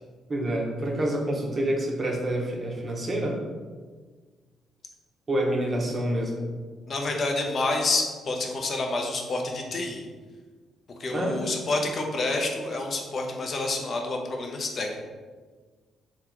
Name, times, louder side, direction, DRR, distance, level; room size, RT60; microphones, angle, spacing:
voice 1, 0.3-3.4 5.3-6.5 11.1-11.4, right 1 dB, 30° right, -1 dB, 0.9 m, -27 dB
voice 2, 6.9-10.0 11.0-15.0, left 2 dB, 45° left, 2 dB, 0.7 m, -28 dB
3.7 x 2.3 x 4.5 m, 1.5 s
cardioid pair, 85°, 0 cm